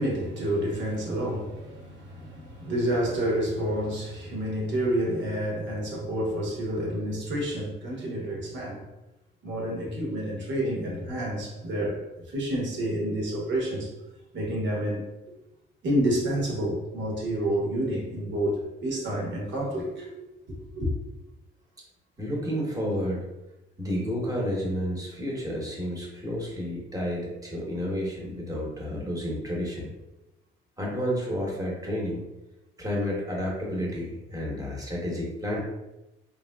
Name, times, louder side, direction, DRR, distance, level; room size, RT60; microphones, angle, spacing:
voice 1, 0.0-8.8 9.4-13.9 14.3-15.0 15.8-20.1 20.6-20.9, right 1 dB, 65° right, 1.1 m, -29 dB
voice 2, 22.2-23.2 23.8-29.9 30.8-32.2 32.8-35.6, equal, 15° right, 1.1 m, -30 dB
3.3 x 2.5 x 2.3 m
cardioid pair, 90°, 20 cm